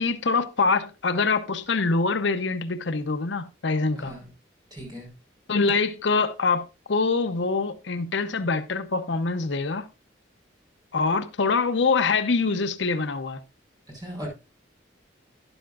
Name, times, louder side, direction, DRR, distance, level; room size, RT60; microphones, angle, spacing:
voice 1, 0.0-4.1 5.5-9.9 10.9-13.4, left 4 dB, 70° left, 0.7 m, -24 dB
voice 2, 3.9-4.3 4.7-5.1 13.9-14.3, equal, 20° right, 5.1 m, -38 dB
12.0 x 10.5 x 2.4 m
head